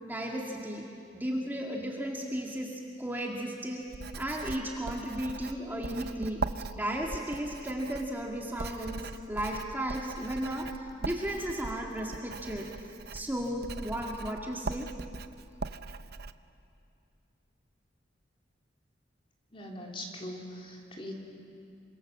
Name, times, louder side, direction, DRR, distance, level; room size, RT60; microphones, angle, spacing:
voice 1, 0.1-0.8 1.1-3.8 4.2-6.4 6.7-12.7 13.1-14.9, equal, 10° right, -1 dB, 2.1 m, -34 dB
Writing, 3.9-16.3, right 3 dB, 55° right, 0.7 m, -40 dB
voice 2, 19.5-21.1, left 1 dB, 30° left, -1 dB, 3.4 m, -41 dB
27.5 x 25.5 x 7.4 m, 2.5 s
head